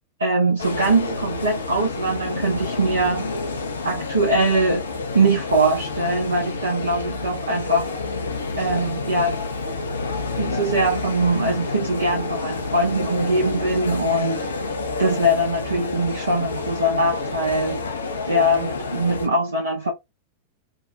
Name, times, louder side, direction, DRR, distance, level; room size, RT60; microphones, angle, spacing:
voice 1, 0.2-3.3 3.8-4.8 5.1-7.9 8.6-9.4 10.4-14.4 15.0-17.8 18.3-19.9, right 1 dB, 75° right, 0.6 m, -22 dB
sound 1, 0.6-19.3, left 3 dB, 70° left, 0.4 m, -29 dB
2.5 x 2.0 x 2.4 m
figure-of-eight pair, 90°, 0 cm